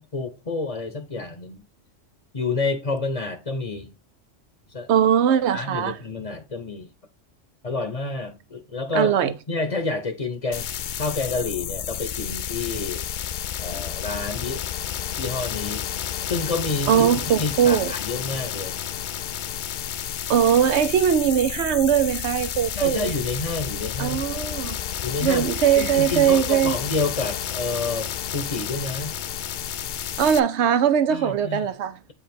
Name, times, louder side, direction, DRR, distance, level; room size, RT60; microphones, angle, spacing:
voice 1, 0.0-1.6 2.3-3.9 4.7-4.9 5.5-6.9 7.6-10.7 11.0-13.0 13.6-14.6 15.2-15.8 16.3-17.1 17.4-18.8 22.7-24.2 25.0-25.5 25.8-29.1 31.1-31.6, left 3 dB, 35° left, 0.9 m, -29 dB
voice 2, 4.9-6.0 8.9-9.3 16.9-17.9 20.3-23.1 24.0-24.8 25.2-26.8 30.2-32.0, right 9 dB, 70° right, 1.0 m, -20 dB
sound 1, 10.5-30.4, left 10 dB, 60° left, 0.5 m, -31 dB
8.5 x 4.9 x 3.5 m
omnidirectional pair, 1.3 m